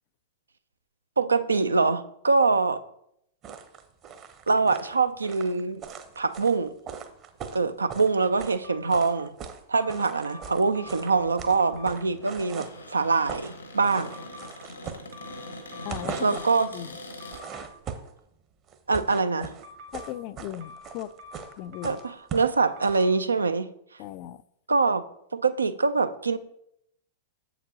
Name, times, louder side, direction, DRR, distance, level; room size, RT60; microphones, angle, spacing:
voice 1, 1.2-2.8 4.5-5.8 6.2-6.7 7.5-9.3 9.7-14.1 16.2-16.7 18.9-19.5 21.8-23.7 24.7-25.0 25.3-26.4, right 4 dB, 80° right, 12 dB, 0.4 m, -24 dB
sound 1, 3.4-8.6 8.9-9.6 9.9-12.8 13.1-13.5 13.8-15.5 15.8-16.6 17.1-18.2 18.7-23.0, right 7 dB, 35° right, 0.8 m, -40 dB
sound 2, 8.6-9.1 9.7-11.1 11.4-11.9 14.0-14.5 15.1-16.7 17.2-17.6 19.6-20.1 20.6-22.1 22.6-23.1, left 3 dB, 55° right, 1.2 m, -46 dB
Cupboard open or close, 10.7-17.4, left 1 dB, 85° left, 1.2 m, -43 dB
voice 2, 15.8-16.3 16.7-17.0 19.9-21.1 21.6-22.0 24.0-24.4, left 13 dB, 45° left, 16 dB, 0.3 m, -37 dB
7.2 x 6.9 x 2.8 m, 0.75 s
figure-of-eight pair, 100°, 0 cm